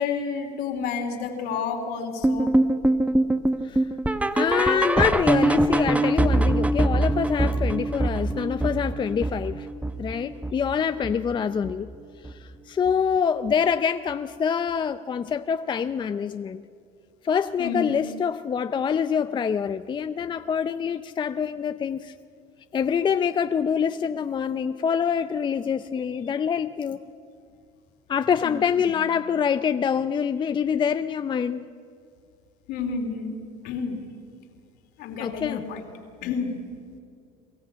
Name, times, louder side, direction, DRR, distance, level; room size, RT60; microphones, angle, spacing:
voice 1, 0.0-2.5 17.6-18.1 28.4-29.1 32.7-33.3 33.6-34.0 35.0-35.8 36.2-36.6, left 5 dB, 65° left, 3.0 m, -30 dB
sound 1, 2.2-11.3 11.6-11.9 12.2-12.3 12.9-13.0 13.5-13.6, right 1 dB, 5° right, 0.8 m, -24 dB
voice 2, 4.3-9.7 10.0-11.9 12.2-16.6 17.2-22.1 22.7-27.0 28.1-31.6 35.2-35.6, left 7 dB, 25° left, 0.5 m, -25 dB
22.5 x 14.0 x 8.7 m
supercardioid pair, 100°, 18 cm